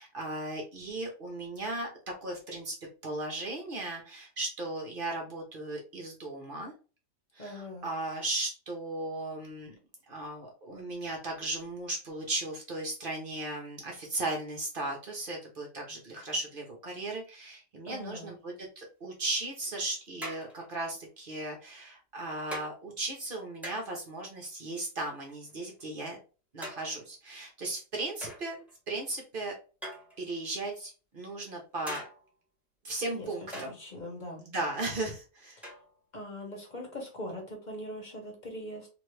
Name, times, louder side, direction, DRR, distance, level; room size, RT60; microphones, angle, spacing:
voice 1, 0.0-2.8 3.0-6.7 7.3-9.7 10.1-26.2 26.5-28.6 28.9-29.6 30.2-32.0 32.8-33.7 34.4-35.6, right 2 dB, 60° right, 0 dB, 0.5 m, -36 dB
voice 2, 7.4-7.9 17.9-18.3 33.1-34.4 36.1-38.9, left 1 dB, 30° left, 0 dB, 0.9 m, -41 dB
sound 1, 19.3-19.4 20.2-20.9 21.7-21.9 22.5-22.7 23.6-24.0 25.2-25.8 26.6-27.1 28.2-28.7 29.8-30.5 31.9-32.4 33.5-33.8 35.6-36.1, equal, ahead, 0.6 m, -43 dB
3.0 x 2.6 x 3.1 m, 0.34 s
omnidirectional pair, 2.0 m